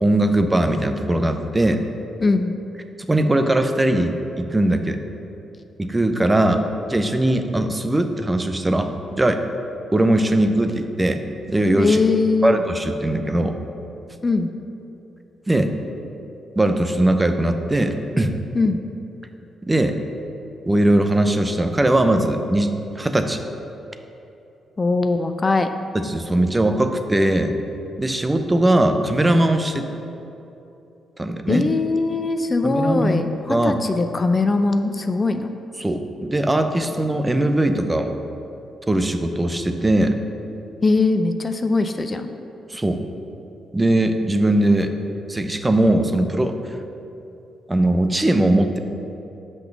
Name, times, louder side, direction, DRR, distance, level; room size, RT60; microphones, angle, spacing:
voice 1, 0.0-1.8 3.1-5.0 5.8-6.6 6.9-9.4 9.9-11.2 11.5-12.0 12.4-13.6 15.5-15.7 16.6-18.4 19.7-20.0 20.7-23.4 25.9-27.6 28.0-29.9 31.2-31.7 32.6-33.8 35.8-38.1 38.9-40.2 42.7-43.0 43.7-44.9 45.3-46.6 47.7-48.8, right 1 dB, 20° right, 7 dB, 0.6 m, -20 dB
voice 2, 2.2-2.5 11.8-12.6 14.2-14.5 18.5-18.8 24.8-25.7 31.5-35.5 40.8-42.3, left 3 dB, 35° left, 8 dB, 0.5 m, -20 dB
5.9 x 5.4 x 6.0 m, 2.9 s
supercardioid pair, 50°, 0 cm